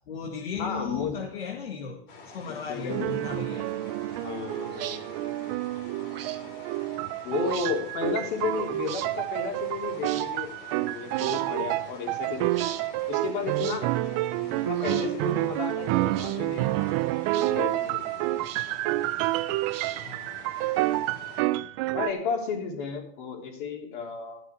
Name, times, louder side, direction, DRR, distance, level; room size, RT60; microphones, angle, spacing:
voice 1, 0.1-3.7 20.0-20.3, left 5 dB, 85° left, 1.8 m, -36 dB
voice 2, 0.6-1.2 2.5-3.1 4.2-5.2 6.4-6.5 7.2-12.8 13.1-13.9 14.4-16.9 17.3-18.4 21.9-24.4, left 5 dB, 55° left, 3.6 m, -33 dB
sound 1, 2.1-21.4, left 4 dB, 35° left, 3.1 m, -48 dB
sound 2, 2.9-22.1, right 17 dB, 35° right, 0.4 m, -29 dB
sound 3, 4.7-5.0 6.1-6.4 7.4-7.7 8.8-9.1 10.0-10.3 11.1-11.5 12.5-12.8 13.5-13.8 14.7-15.1 16.1-16.4 17.3-17.5 18.4-18.8 19.7-20.2, right 11 dB, 80° right, 1.2 m, -40 dB
13.5 x 9.2 x 4.7 m
hypercardioid pair, 140°, 29 cm